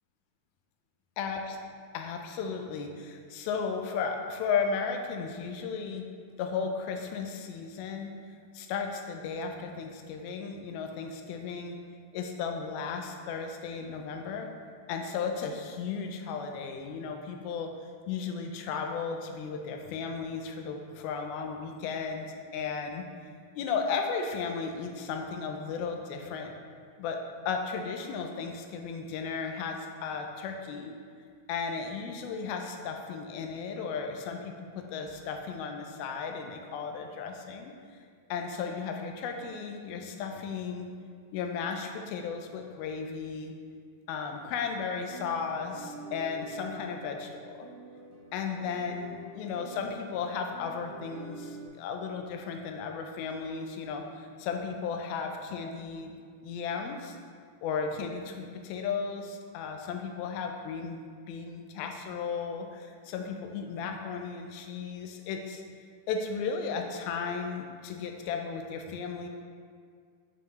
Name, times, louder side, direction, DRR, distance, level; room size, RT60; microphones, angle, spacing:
voice 1, 1.2-1.6 1.9-6.1 6.4-8.1 8.5-11.8 12.1-14.5 14.9-17.7 18.1-23.1 23.6-26.5 27.0-27.2 27.5-30.9 31.5-37.7 38.3-40.9 41.3-43.5 44.1-47.7 48.3-56.2 56.4-57.2 57.6-65.6 66.1-69.3, left 5 dB, 85° left, 3 dB, 2.5 m, -35 dB
sound 1, 45.1-51.7, right 3 dB, 70° right, 1.4 m, -47 dB
9.1 x 5.6 x 3.1 m, 2.1 s
omnidirectional pair, 4.3 m